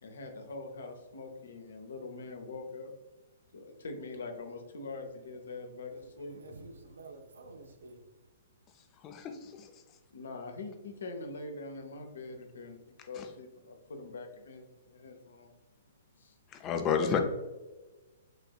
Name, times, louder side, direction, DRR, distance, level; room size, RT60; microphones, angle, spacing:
voice 1, 0.0-2.9 3.5-6.4 10.1-12.8 13.1-14.6 14.9-15.5 16.2-16.3, left 3 dB, 60° left, 0.7 m, -43 dB
voice 2, 5.9-8.0, right 3 dB, 65° right, 0.6 m, -50 dB
voice 3, 16.6-17.2, left 7 dB, 25° left, 0.6 m, -29 dB
6.3 x 2.6 x 2.4 m
figure-of-eight pair, 115°, 0 cm